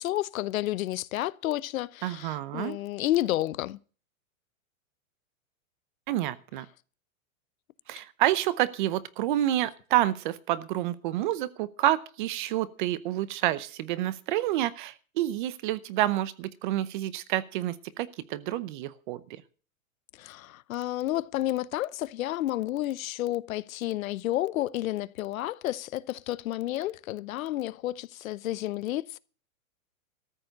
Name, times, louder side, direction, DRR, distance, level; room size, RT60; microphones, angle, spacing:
voice 1, 0.0-3.8 20.2-29.2, left 15 dB, 75° left, 0.8 m, -31 dB
voice 2, 2.0-2.8 6.1-6.7 7.9-19.2, right 14 dB, 35° right, 0.7 m, -28 dB
14.0 x 7.0 x 7.7 m
supercardioid pair, 165°, 41 cm